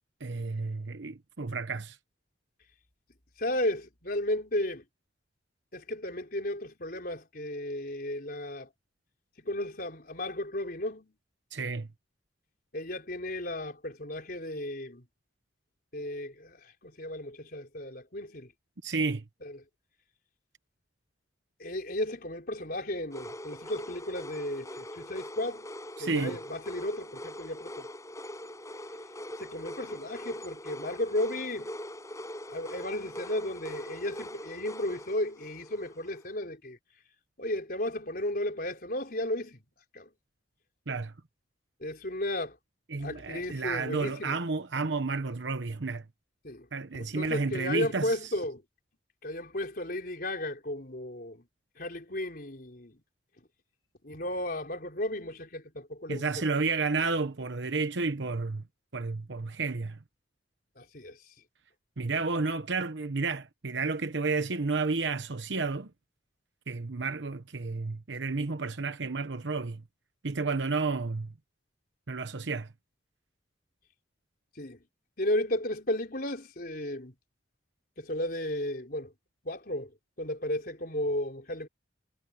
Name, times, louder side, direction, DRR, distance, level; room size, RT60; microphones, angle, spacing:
voice 1, 0.2-2.0 11.5-11.9 18.8-19.2 26.0-26.4 40.9-41.1 42.9-46.0 46.7-48.2 56.1-58.6 58.9-60.0 62.0-65.9 66.7-69.8 70.2-71.3 72.1-72.7, right 4 dB, 80° right, 1.0 m, -31 dB
voice 2, 3.4-4.8 5.7-8.7 9.4-11.1 12.7-15.0 15.9-18.5 19.4-19.6 21.6-25.7 26.0-27.9 29.4-31.7 32.5-36.8 37.4-39.6 39.9-40.1 41.8-42.6 43.0-44.4 46.4-46.7 46.9-48.6 49.2-51.4 51.8-53.0 54.0-56.3 60.8-61.2 74.6-74.8 75.2-77.1 78.0-79.1 79.4-79.9 80.2-81.7, left 1 dB, 55° left, 4.3 m, -34 dB
sound 1, 23.1-36.2, left 1 dB, 15° left, 7.7 m, -42 dB
head